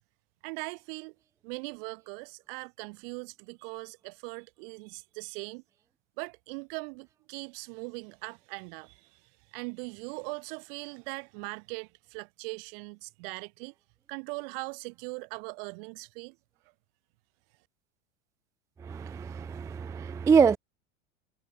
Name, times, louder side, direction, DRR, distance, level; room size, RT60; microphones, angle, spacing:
voice 1, 0.4-1.1 1.4-5.6 6.2-9.1 9.5-13.7 14.1-16.4, right 33 dB, 50° right, 0.9 m, -40 dB
voice 2, 18.8-20.6, right 6 dB, 10° right, 0.3 m, -25 dB
hypercardioid pair, 95°, 36 cm